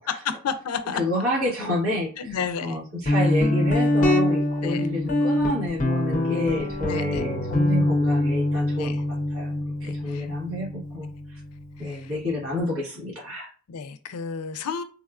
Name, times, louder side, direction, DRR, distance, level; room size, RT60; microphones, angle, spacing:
voice 1, 0.1-1.0 2.2-2.8 4.6-4.9 6.9-7.2 8.8-9.0 9.8-10.3 11.8-12.1 13.7-14.8, left 6 dB, 90° left, 11 dB, 0.4 m, -31 dB
voice 2, 0.9-8.9 9.3-9.5 9.8-11.4 11.8-13.5, left 1 dB, 65° right, -3 dB, 1.2 m, -29 dB
Guitar, 3.1-12.5, left 1 dB, 35° left, 0.6 m, -24 dB
3.5 x 2.2 x 2.4 m, 0.38 s
head